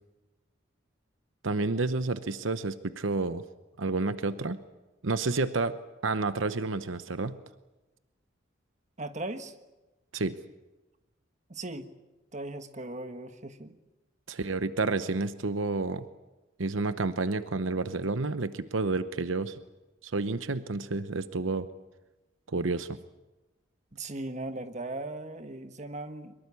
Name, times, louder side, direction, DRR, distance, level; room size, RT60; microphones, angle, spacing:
voice 1, 1.4-3.4 3.8-4.6 5.0-5.7 6.0-7.4 10.1-10.4 14.3-16.0 16.6-19.6 20.0-21.7 22.5-23.0, right 3 dB, 75° right, 12 dB, 0.9 m, -30 dB
voice 2, 9.0-9.5 11.5-11.9 12.3-13.7 23.9-26.3, right 2 dB, 35° right, 9 dB, 1.3 m, -38 dB
23.5 x 22.0 x 8.4 m, 1.1 s
head